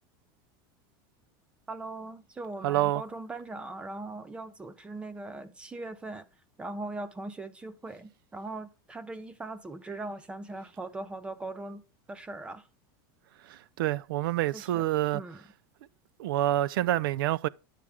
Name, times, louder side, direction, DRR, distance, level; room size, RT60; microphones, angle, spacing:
voice 1, 1.7-6.3 6.6-11.8 12.1-12.7 14.5-14.8 15.1-15.4, right 2 dB, 10° right, 0.5 m, -40 dB
voice 2, 2.6-3.0 13.5-15.2 16.2-17.5, right 14 dB, 85° right, 0.4 m, -27 dB
9.8 x 7.7 x 3.5 m
supercardioid pair, 170°, 11 cm